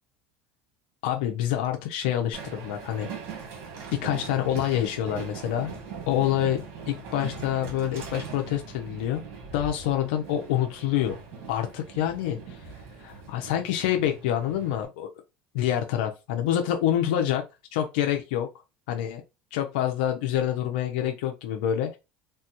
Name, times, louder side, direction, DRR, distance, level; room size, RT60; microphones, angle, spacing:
voice 1, 1.0-3.1 3.9-5.7 6.1-9.2 9.5-11.2 11.5-12.7 13.0-15.1 15.5-17.4 17.7-18.5 18.9-19.2 19.5-22.0, left 11 dB, 80° left, 0.5 m, -27 dB
Train, 2.3-14.9, right 5 dB, 65° right, 1.3 m, -41 dB
3.3 x 2.2 x 2.8 m
supercardioid pair, 105°, 5 cm